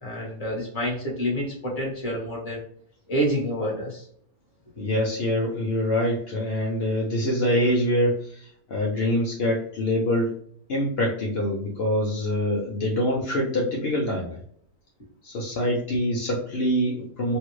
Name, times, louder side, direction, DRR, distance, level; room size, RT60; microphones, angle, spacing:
voice 1, 0.0-2.6 3.1-4.1, equal, 25° left, -3 dB, 1.2 m, -28 dB
voice 2, 4.8-10.3 10.7-14.4 15.2-17.4, left 1 dB, 65° left, -3 dB, 0.6 m, -25 dB
3.3 x 2.3 x 3.0 m, 0.63 s
omnidirectional pair, 1.8 m